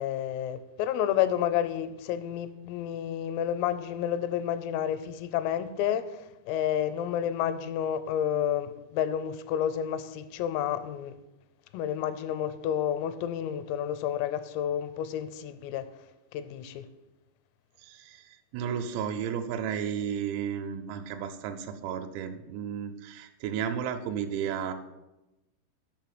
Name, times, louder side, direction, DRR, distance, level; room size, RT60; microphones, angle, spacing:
voice 1, 0.0-11.1 11.7-15.9 16.3-16.9, left 10 dB, 85° left, 3.3 m, -30 dB
voice 2, 17.8-24.7, right 8 dB, 90° right, 3.4 m, -33 dB
7.3 x 5.6 x 7.5 m
omnidirectional pair, 6.0 m